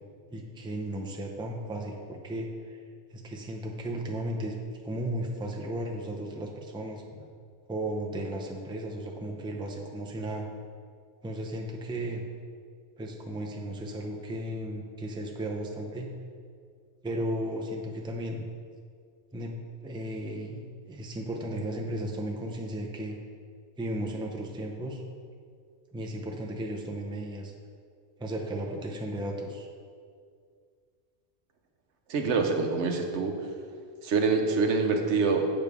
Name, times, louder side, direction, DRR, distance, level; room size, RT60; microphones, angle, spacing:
voice 1, 0.3-2.8 3.1-4.6 4.8-7.3 7.7-10.5 11.2-12.2 13.0-16.1 17.0-18.5 19.3-19.5 19.8-23.2 23.8-25.0 25.9-27.5 28.2-29.7, right 1 dB, 5° right, 0 dB, 0.5 m, -35 dB
voice 2, 32.1-33.5 34.0-35.5, right 4 dB, 85° right, 4 dB, 1.1 m, -25 dB
8.0 x 6.9 x 3.5 m, 2.1 s
omnidirectional pair, 1.2 m